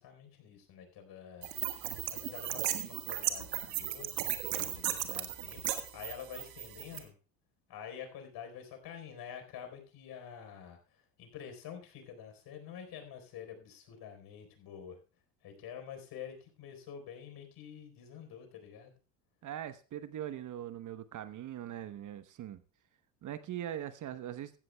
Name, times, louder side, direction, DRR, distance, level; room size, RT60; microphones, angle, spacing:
voice 1, 0.0-1.5 1.8-4.2 4.6-7.1 7.7-15.0 15.4-18.9, left 8 dB, 50° left, 6 dB, 4.3 m, -48 dB
sound 1, 1.4-7.0, right 13 dB, 80° right, 1.5 m, -36 dB
voice 2, 19.4-22.6 23.2-24.5, right 11 dB, 40° right, 12 dB, 1.0 m, -41 dB
16.0 x 13.5 x 2.3 m, 0.36 s
hypercardioid pair, 75°, 48 cm